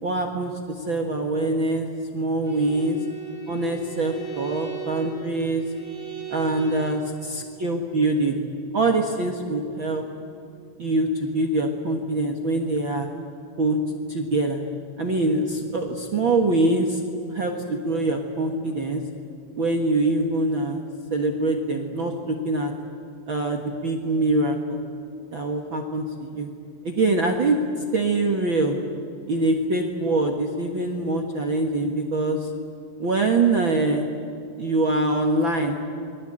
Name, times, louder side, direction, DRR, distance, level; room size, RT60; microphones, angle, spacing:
voice 1, 0.0-1.9 2.1-3.0 3.5-5.6 6.3-7.0 7.6-8.4 8.7-10.0 10.8-13.1 13.6-13.8 14.1-14.6 15.0-17.0 17.3-19.0 19.6-20.8 21.1-22.7 23.3-24.8 25.3-26.5 26.8-27.6 27.9-28.8 29.3-32.5 33.0-34.1 34.6-35.8, right 2 dB, 45° right, 3 dB, 1.8 m, -24 dB
Bowed string instrument, 2.4-7.1, right 9 dB, 65° left, 9.1 m, -37 dB
29.0 x 22.5 x 8.8 m, 2.6 s
omnidirectional pair, 4.1 m